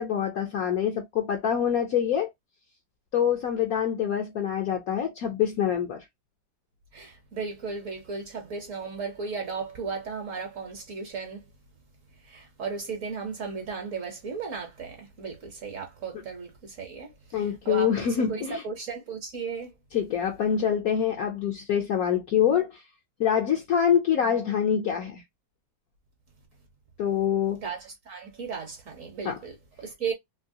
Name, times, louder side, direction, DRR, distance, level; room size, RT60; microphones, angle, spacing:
voice 1, 0.0-2.3 3.1-6.0 17.3-18.6 19.9-22.8 23.2-25.2 27.0-27.6 29.2-29.4, left 8 dB, 65° left, 0.9 m, -25 dB
voice 2, 6.9-11.4 12.3-18.0 18.3-19.7 27.6-30.1, right 5 dB, 55° right, 1.0 m, -35 dB
3.1 x 2.7 x 2.7 m
omnidirectional pair, 2.0 m